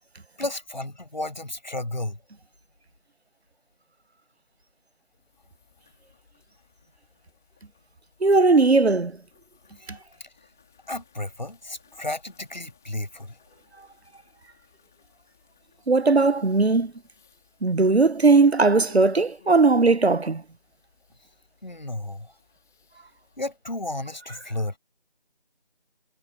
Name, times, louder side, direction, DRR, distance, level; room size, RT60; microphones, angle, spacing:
voice 1, 0.4-2.2 10.2-10.3 10.9-13.4 21.6-22.3 23.4-24.7, left 1 dB, 45° left, 7.2 m, -33 dB
sound 1, 5.0-23.6, left 6 dB, 5° left, 2.6 m, -60 dB
voice 2, 8.2-9.1 15.9-16.9 17.6-20.4, right 3 dB, 85° right, 1.0 m, -18 dB
figure-of-eight pair, 175°, 31 cm